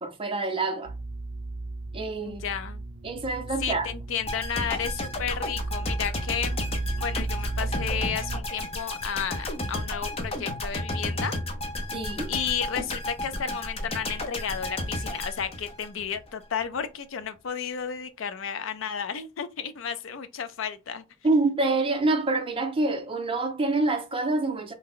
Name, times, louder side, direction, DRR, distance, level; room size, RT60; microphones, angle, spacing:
voice 1, 0.0-0.9 1.9-2.4 3.0-3.9 11.9-12.3 21.2-24.7, right 2 dB, 25° right, 0.6 m, -26 dB
sound 1, 0.8-8.4, right 2 dB, 75° right, 0.5 m, -34 dB
voice 2, 2.2-2.8 3.6-6.6 7.0-11.4 12.3-21.0, left 7 dB, 75° left, 0.4 m, -32 dB
sound 2, 4.3-16.3 16.6-16.7, left 1 dB, 30° left, 0.6 m, -33 dB
2.7 x 2.1 x 3.7 m
head